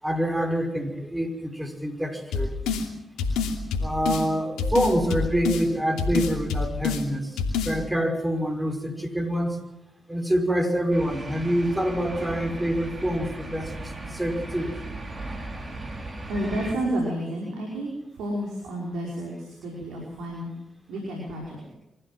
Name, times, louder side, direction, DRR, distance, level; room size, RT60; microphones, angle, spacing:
voice 1, 0.0-2.5 3.8-9.6 10.1-14.7, equal, 10° right, 4 dB, 5.8 m, -26 dB
sound 1, 2.3-2.9 3.2-4.3 4.6-5.6 6.0-7.0 7.4-7.7, left 5 dB, 80° left, 2.8 m, -26 dB
sound 2, 10.9-16.8, right 2 dB, 35° right, 5.1 m, -36 dB
voice 2, 16.3-20.5 20.9-21.7, right 1 dB, 75° right, -2 dB, 5.3 m, -31 dB
24.5 x 15.0 x 7.8 m, 0.89 s
hypercardioid pair, 45°, 0 cm